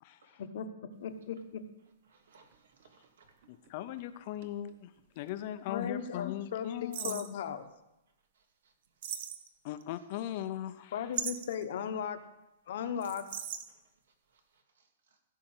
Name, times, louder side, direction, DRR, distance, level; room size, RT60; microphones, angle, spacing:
voice 1, 0.0-0.4 3.5-4.9 5.2-7.3 9.6-11.0, left 12 dB, 35° left, 12 dB, 0.6 m, -39 dB
voice 2, 1.0-1.6 5.7-7.7 10.9-12.2 12.7-13.2, left 8 dB, 50° left, 9 dB, 1.0 m, -36 dB
sound 1, 1.3-1.4 2.3-5.0 5.3-5.4 6.9-7.4 9.0-9.8 11.1-11.6 13.0-13.7, right 9 dB, 40° right, 0.9 m, -39 dB
voice 3, 2.1-3.5 8.3-8.7 12.6-12.7 13.7-13.8 14.3-15.2, right 4 dB, 80° right, 4 dB, 2.6 m, -66 dB
16.0 x 5.7 x 8.0 m, 0.93 s
hypercardioid pair, 175°, 0 cm